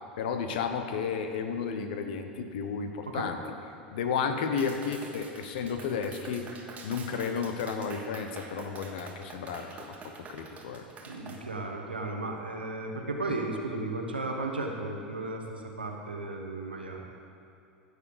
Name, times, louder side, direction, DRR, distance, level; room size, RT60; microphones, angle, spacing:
voice 1, 0.2-3.4 3.9-6.5 6.8-10.9 13.3-13.4, left 6 dB, 65° left, 7 dB, 1.0 m, -32 dB
Clapping, 4.6-11.4, right 4 dB, 30° right, 1.5 m, -47 dB
voice 2, 11.0-17.0, right 2 dB, 90° right, 1 dB, 1.1 m, -35 dB
15.5 x 6.6 x 5.2 m, 2.6 s
figure-of-eight pair, 80°, 5 cm